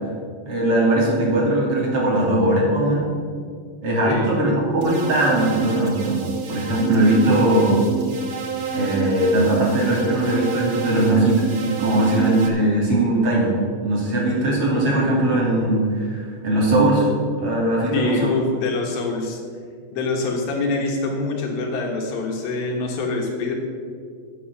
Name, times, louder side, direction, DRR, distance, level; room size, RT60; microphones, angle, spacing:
voice 1, 0.4-3.1 3.8-6.2 6.5-7.8 8.7-13.5 13.8-17.1 17.4-18.4, right 1 dB, 45° right, -4 dB, 3.2 m, -20 dB
sound 1, 4.8-12.5, right 6 dB, 60° right, 1.3 m, -29 dB
voice 2, 17.9-19.4 19.9-23.6, left 3 dB, 85° left, 2 dB, 3.1 m, -25 dB
10.5 x 8.6 x 6.6 m, 2.1 s
omnidirectional pair, 4.0 m